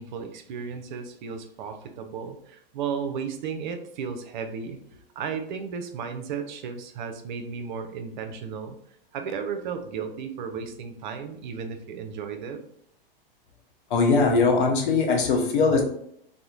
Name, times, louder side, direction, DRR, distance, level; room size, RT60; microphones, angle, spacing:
voice 1, 0.0-4.8 5.2-8.8 9.1-12.6, right 6 dB, 55° right, 7 dB, 0.5 m, -34 dB
voice 2, 13.9-15.8, left 4 dB, 60° left, 2 dB, 0.7 m, -21 dB
2.9 x 2.1 x 2.4 m, 0.69 s
hypercardioid pair, 105°, 29 cm